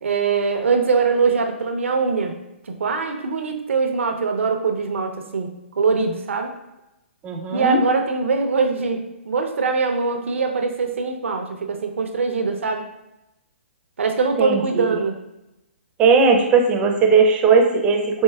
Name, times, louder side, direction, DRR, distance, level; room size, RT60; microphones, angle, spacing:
voice 1, 0.0-2.4 2.6-6.5 7.5-12.9 14.0-15.2, right 4 dB, 80° right, 5 dB, 0.5 m, -22 dB
voice 2, 7.2-7.8 14.4-15.0 16.0-18.2, right 5 dB, 20° right, 3 dB, 0.4 m, -17 dB
4.4 x 3.0 x 2.2 m, 0.91 s
hypercardioid pair, 140°, 7 cm